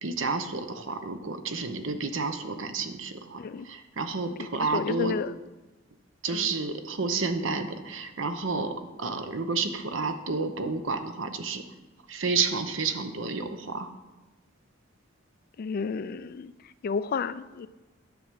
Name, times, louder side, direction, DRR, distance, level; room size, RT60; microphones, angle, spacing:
voice 1, 0.0-5.1 6.2-11.6 12.1-13.9, right 4 dB, 70° right, 8 dB, 0.9 m, -30 dB
voice 2, 4.4-5.3 6.3-6.5 15.6-16.5 16.8-17.7, left 5 dB, 50° left, 15 dB, 0.4 m, -31 dB
10.5 x 4.9 x 7.5 m, 1.1 s
head